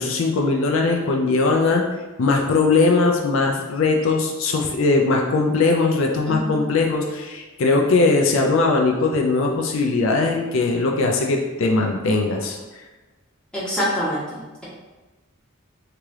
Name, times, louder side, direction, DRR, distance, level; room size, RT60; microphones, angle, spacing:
voice 1, 0.0-1.8 2.2-12.6, left 3 dB, 75° left, 1 dB, 0.4 m, -20 dB
voice 2, 6.3-6.6 13.5-14.4, equal, 5° left, -10 dB, 1.2 m, -25 dB
3.2 x 2.8 x 3.5 m, 1.2 s
head